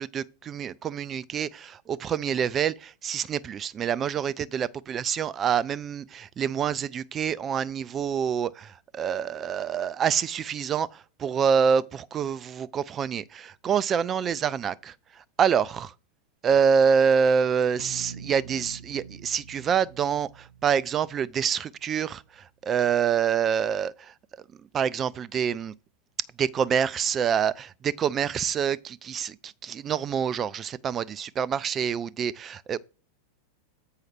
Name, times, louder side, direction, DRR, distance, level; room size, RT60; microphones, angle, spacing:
voice 1, 0.0-15.9 16.4-24.1 24.6-25.7 26.4-32.8, right 7 dB, 25° right, 0.4 m, -26 dB
sound 1, 17.8-22.4, right 7 dB, 55° right, 0.7 m, -46 dB
7.9 x 5.6 x 4.4 m
figure-of-eight pair, 90°, 0 cm